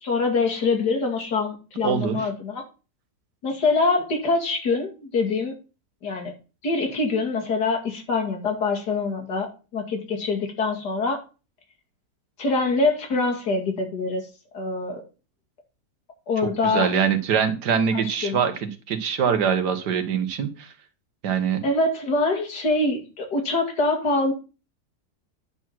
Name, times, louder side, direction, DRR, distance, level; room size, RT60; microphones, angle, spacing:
voice 1, 0.0-2.6 3.4-5.6 6.0-6.3 6.6-11.2 12.4-14.3 14.5-15.0 16.3-16.9 17.9-18.4 21.6-24.3, left 3 dB, 75° left, 2 dB, 2.7 m, -24 dB
voice 2, 1.8-2.2 16.4-20.7 21.2-21.7, right 7 dB, 80° right, 9 dB, 1.8 m, -24 dB
9.9 x 4.7 x 5.9 m, 0.33 s
omnidirectional pair, 1.8 m